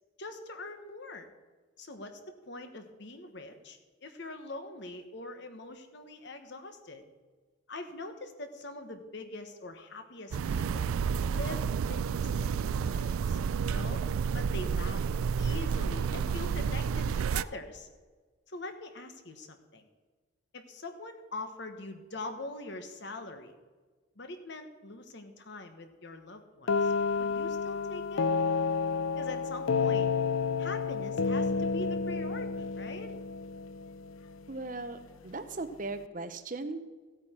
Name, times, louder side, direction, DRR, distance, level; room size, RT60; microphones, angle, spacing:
voice 1, 0.2-1.3 1.8-7.0 7.7-10.9 11.3-13.4 13.7-14.0 14.3-15.0 15.4-17.9 18.5-19.9 20.5-23.5 24.2-26.9 27.2-28.3 29.1-30.1 30.6-33.1, left 2 dB, 55° left, 7 dB, 1.3 m, -43 dB
sound 1, 10.3-17.4, right 6 dB, 85° right, 0.3 m, -30 dB
sound 2, 26.7-34.4, left 5 dB, 70° left, 0.5 m, -30 dB
voice 2, 34.5-35.0 35.2-36.8, right 3 dB, 40° right, 10 dB, 0.8 m, -37 dB
15.5 x 8.7 x 4.4 m, 1.4 s
head